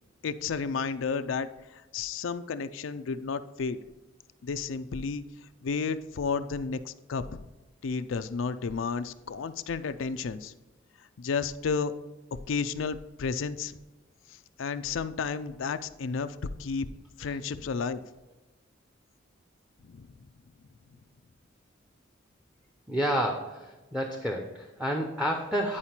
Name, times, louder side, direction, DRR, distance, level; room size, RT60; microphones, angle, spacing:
voice 1, 0.2-3.8 4.4-5.2 5.6-7.5 7.8-10.5 11.2-11.9 12.5-13.8 14.3-16.9 17.2-18.0 19.8-20.1, left 5 dB, 85° left, 11 dB, 0.4 m, -32 dB
voice 2, 22.9-25.8, equal, 5° right, 3 dB, 0.7 m, -30 dB
9.8 x 4.9 x 4.3 m, 1.1 s
head